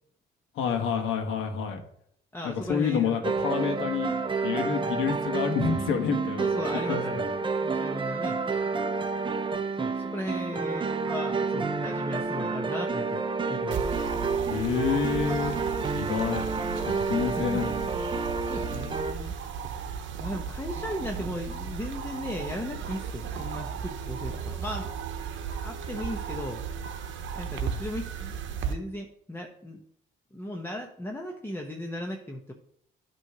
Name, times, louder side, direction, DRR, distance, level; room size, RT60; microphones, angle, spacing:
voice 1, 0.6-1.8 2.4-4.1 4.4-6.4 6.9-7.3 14.5-15.6 15.9-16.4 16.9-17.7, left 6 dB, 85° left, 4 dB, 1.2 m, -28 dB
voice 2, 2.3-3.2 3.8-3.9 4.8-5.1 6.4-7.3 7.6-8.4 9.8-13.9 17.4-17.6 18.5-19.3 19.8-24.9 25.5-26.6 27.4-28.1 28.6-29.8 30.3-32.5, left 1 dB, 10° left, 2 dB, 0.8 m, -36 dB
sound 1, 3.2-19.1, right 4 dB, 25° right, 0.6 m, -29 dB
sound 2, 13.7-28.7, right 7 dB, 70° right, 0.8 m, -35 dB
8.8 x 3.1 x 5.9 m, 0.68 s
cardioid pair, 90°, 20 cm